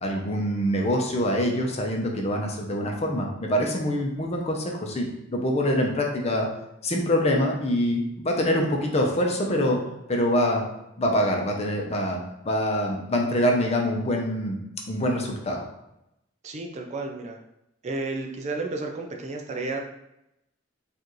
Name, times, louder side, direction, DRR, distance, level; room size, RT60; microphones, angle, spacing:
voice 1, 0.0-6.5 6.8-9.8 10.1-10.6 11.0-12.2 12.4-14.6 14.9-15.6, equal, 35° left, 1 dB, 0.6 m, -25 dB
voice 2, 16.4-17.4 17.8-19.8, right 3 dB, 35° right, 2 dB, 0.4 m, -32 dB
4.7 x 2.5 x 3.0 m, 0.84 s
head